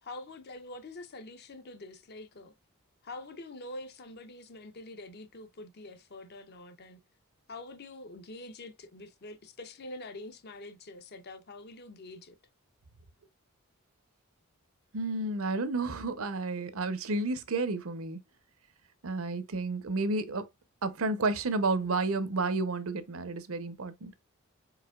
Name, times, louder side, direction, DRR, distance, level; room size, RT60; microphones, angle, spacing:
voice 1, 0.0-2.5 3.0-7.0 7.5-12.4, left 2 dB, 45° left, 0.7 m, -45 dB
voice 2, 14.9-18.2 19.0-20.5 20.8-24.1, right 3 dB, 70° right, 0.7 m, -31 dB
4.8 x 4.3 x 2.3 m
head